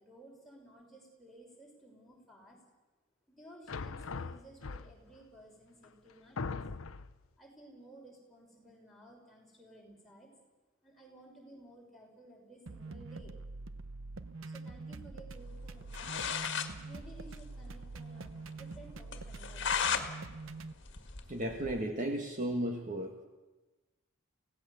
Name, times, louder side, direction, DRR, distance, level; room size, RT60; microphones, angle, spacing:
voice 1, 0.0-2.6 3.3-6.6 7.4-10.3 10.8-13.5 14.4-16.2 16.8-19.9, right 1 dB, ahead, -3 dB, 5.6 m, -56 dB
sound 1, 3.7-5.2 5.8-5.9 6.4-7.2, left 4 dB, 90° left, 0.8 m, -40 dB
sound 2, 12.7-20.7, right 3 dB, 70° right, 0.9 m, -45 dB
sound 3, 15.7-15.8 15.9-16.7 17.1-17.2 17.4-17.5 17.9-18.0 18.4-18.5 19.1-20.1 20.5-21.8, left 7 dB, 60° left, 1.7 m, -34 dB
voice 2, 21.3-23.1, right 1 dB, 40° right, 3 dB, 1.7 m, -34 dB
25.0 x 17.5 x 7.1 m, 1.1 s
head